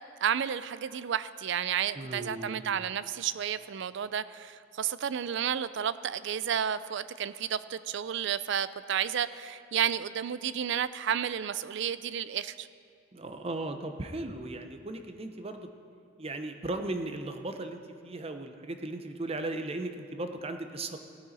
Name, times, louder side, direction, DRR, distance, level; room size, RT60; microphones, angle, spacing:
voice 1, 0.2-12.7, right 8 dB, 65° right, 15 dB, 0.4 m, -31 dB
voice 2, 2.0-2.6 13.1-15.7 16.2-21.0, right 2 dB, 30° right, 7 dB, 0.8 m, -37 dB
17.5 x 9.2 x 4.2 m, 2.4 s
head